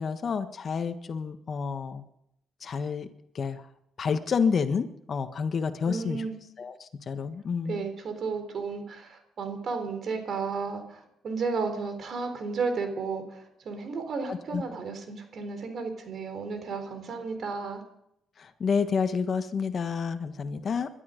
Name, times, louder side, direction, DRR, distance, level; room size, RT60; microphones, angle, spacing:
voice 1, 0.0-2.0 2.6-3.1 3.3-3.6 4.0-6.2 6.6-7.8 14.3-14.6 18.4-20.9, left 5 dB, 50° left, 9 dB, 1.4 m, -29 dB
voice 2, 5.9-6.4 7.7-17.8, right 4 dB, 55° right, 7 dB, 3.9 m, -33 dB
21.5 x 12.5 x 5.2 m, 0.77 s
cardioid pair, 90°, 0 cm